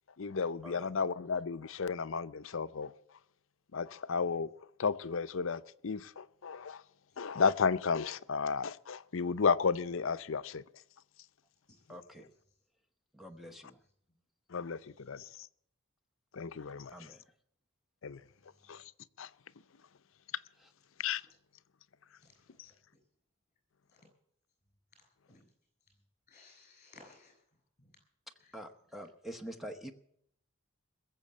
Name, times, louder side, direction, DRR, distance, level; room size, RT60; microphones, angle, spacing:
voice 1, 0.2-2.9 3.7-4.5 4.8-6.8 7.2-10.6 14.5-15.5 16.3-16.9 18.0-18.2 18.7-18.8 19.2-19.3 21.0-21.2, left 5 dB, 65° left, 0.6 m, -33 dB
voice 2, 11.9-12.3 13.1-13.8 16.9-17.2 28.5-29.9, equal, ahead, 0.9 m, -46 dB
voice 3, 22.2-22.7 25.3-25.4 26.3-27.4 27.8-27.9 28.4-28.6, left 3 dB, 35° left, 7.4 m, -59 dB
21.5 x 7.3 x 8.5 m
head